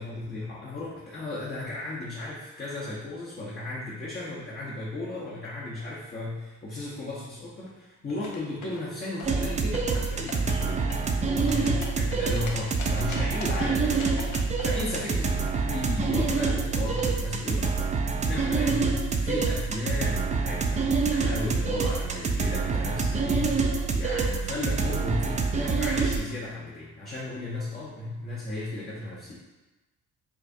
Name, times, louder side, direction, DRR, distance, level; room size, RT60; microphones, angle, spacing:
voice 1, 0.0-10.8 11.2-14.3 14.6-17.9 18.2-20.8 21.1-29.4, left 2 dB, 30° left, -6 dB, 0.8 m, -35 dB
sound 1, 8.1-8.8 9.2-10.0 10.3-10.7 10.9-12.5 12.8-13.6 14.0-17.0, left 5 dB, 70° left, 0.6 m, -41 dB
sound 2, 9.2-26.2, right 4 dB, 25° right, 0.4 m, -26 dB
4.6 x 2.5 x 2.6 m, 1.1 s
cardioid pair, 90°, 30 cm